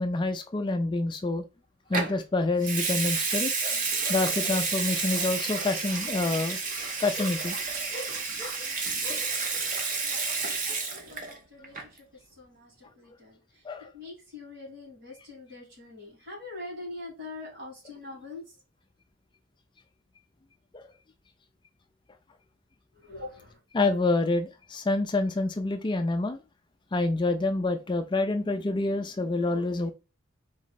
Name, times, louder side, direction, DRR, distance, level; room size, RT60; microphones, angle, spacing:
voice 1, 0.0-1.4 1.9-6.6 7.0-7.6 7.9-8.7 9.0-9.3 10.7-10.8 13.6-13.9 20.7-20.9 23.7-26.4 26.9-29.9, left 2 dB, 20° left, 0.3 m, -28 dB
Water tap faucet / Sink (filling or washing) / Liquid, 1.9-2.2 2.6-11.4 11.6-12.0, right 4 dB, 40° right, 0.9 m, -30 dB
voice 2, 10.9-11.8 12.4-13.4 13.7-18.4 23.0-23.6, left 2 dB, 55° right, 2.7 m, -43 dB
4.0 x 3.1 x 4.0 m
head